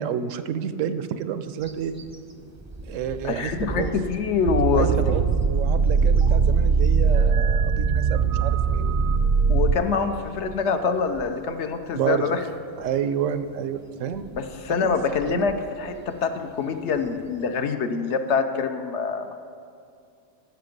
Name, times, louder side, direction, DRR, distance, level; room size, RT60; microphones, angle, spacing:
voice 1, 0.0-1.9 2.9-3.9 4.7-9.0 11.9-12.3 12.8-14.2 14.8-15.5, right 8 dB, 90° right, 11 dB, 1.0 m, -29 dB
sound 1, 1.6-17.7, right 2 dB, 20° right, 0.5 m, -41 dB
voice 2, 3.2-4.9 9.5-12.4 14.3-19.4, left 5 dB, 70° left, 7 dB, 1.0 m, -25 dB
sound 2, 4.5-9.8, right 5 dB, 60° right, 0.6 m, -20 dB
14.5 x 5.8 x 5.2 m, 2.4 s
omnidirectional pair, 1.3 m